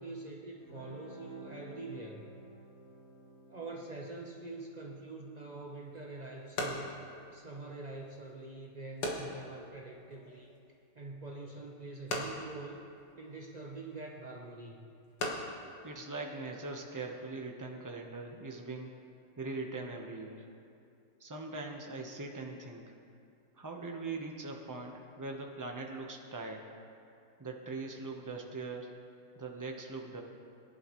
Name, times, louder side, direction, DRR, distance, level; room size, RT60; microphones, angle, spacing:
voice 1, 0.0-2.3 3.5-10.5 10.9-12.8 13.1-14.9, right 2 dB, 70° right, -2 dB, 0.4 m, -45 dB
Guitar, 0.6-7.7, right 1 dB, 85° left, 3.9 m, -54 dB
sound 1, 5.5-16.9, left 1 dB, 55° left, 2.0 m, -43 dB
voice 2, 15.8-18.9 19.4-20.5 21.2-22.8 23.6-26.7 27.4-28.9 29.4-30.2, right 3 dB, 20° right, 1 dB, 0.5 m, -41 dB
21.5 x 11.0 x 3.2 m, 2.5 s
omnidirectional pair, 2.2 m